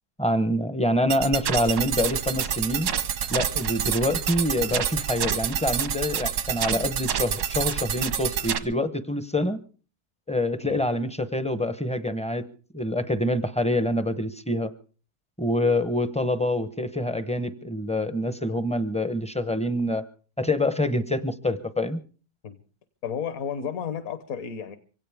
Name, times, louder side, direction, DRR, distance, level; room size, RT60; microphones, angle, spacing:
voice 1, 0.2-2.9 3.3-9.6 10.3-12.4 12.7-14.7 15.4-20.0 20.4-22.0, left 1 dB, 10° left, 11 dB, 0.4 m, -26 dB
sound 1, 1.1-8.6, right 8 dB, 85° right, 1.6 m, -28 dB
voice 2, 23.0-24.8, left 7 dB, 65° left, 11 dB, 1.3 m, -32 dB
24.0 x 17.0 x 3.5 m, 0.39 s
omnidirectional pair, 1.6 m